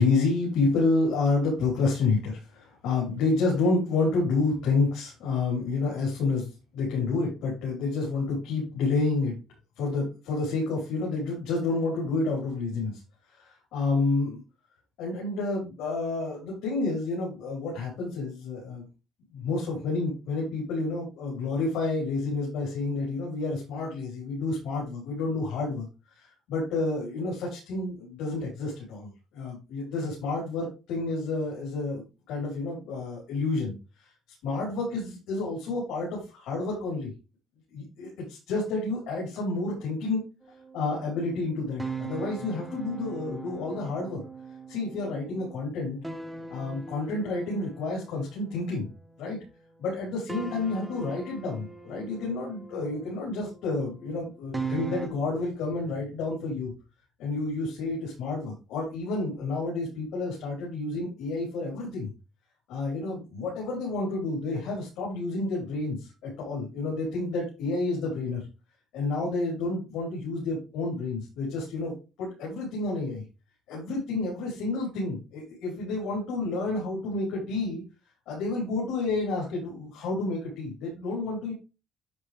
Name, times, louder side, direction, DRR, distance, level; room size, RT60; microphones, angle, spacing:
voice 1, 0.0-9.4 9.8-13.0 13.3-14.4 15.0-18.9 19.3-25.9 26.1-33.8 34.4-37.1 37.7-40.2 40.7-44.2 44.7-46.0 46.5-48.9 49.2-49.4 49.8-56.7 57.2-62.1 62.7-68.4 68.9-71.9 72.2-73.2 73.7-77.8 78.3-81.5, left 3 dB, 90° left, -5 dB, 5.3 m, -29 dB
sound 1, 40.4-49.7 50.3-55.1, right 4 dB, 5° right, 1.1 m, -41 dB
11.5 x 4.9 x 3.7 m, 0.29 s
cardioid pair, 150°, 0 cm